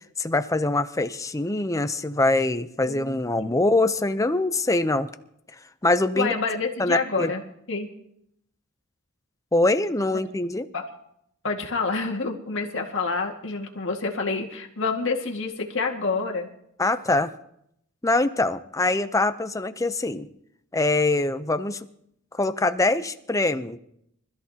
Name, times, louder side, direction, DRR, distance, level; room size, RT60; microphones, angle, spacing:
voice 1, 0.2-5.1 5.8-6.3 6.8-7.3 9.5-10.7 16.8-17.3 18.0-20.3 20.7-21.8 22.3-23.8, left 2 dB, 15° left, 10 dB, 0.6 m, -23 dB
voice 2, 2.8-3.5 6.1-7.4 7.7-7.9 10.7-10.8 11.4-16.5, left 4 dB, 60° left, 1 dB, 1.9 m, -28 dB
25.0 x 13.5 x 2.9 m, 0.74 s
head